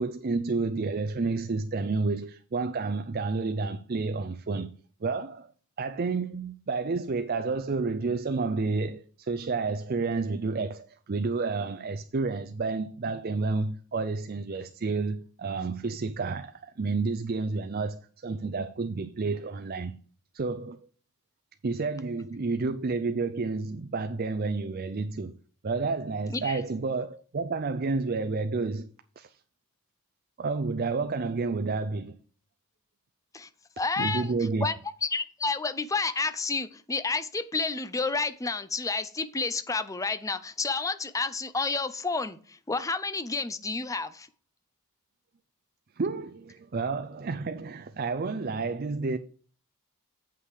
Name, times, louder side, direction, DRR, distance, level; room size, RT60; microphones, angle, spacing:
voice 1, 0.0-4.7 5.0-5.5 5.8-19.9 20.3-20.8 21.6-25.3 25.6-28.9 29.2-29.4 30.4-32.2 34.0-34.7 46.0-49.2, right 4 dB, 40° right, 0.5 m, -30 dB
voice 2, 26.3-26.6 33.3-33.5 33.8-34.3 34.6-34.8 35.0-44.3, left 3 dB, 15° left, 0.5 m, -30 dB
8.3 x 5.7 x 4.8 m
head